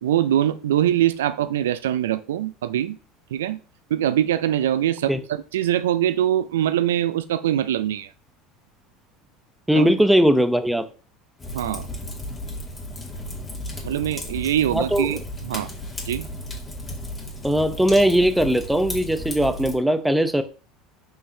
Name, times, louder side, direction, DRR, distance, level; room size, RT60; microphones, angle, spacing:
voice 1, 0.0-3.0 3.3-3.6 3.9-8.1 9.8-9.9 11.5-11.9 13.8-15.7 16.1-16.3, right 11 dB, 85° right, 0.4 m, -23 dB
voice 2, 9.7-10.8 14.7-15.1 17.4-20.4, equal, 5° right, 0.9 m, -19 dB
Fire, 11.4-19.7, left 1 dB, 25° left, 2.6 m, -34 dB
7.5 x 5.4 x 2.9 m
hypercardioid pair, 80°, 0 cm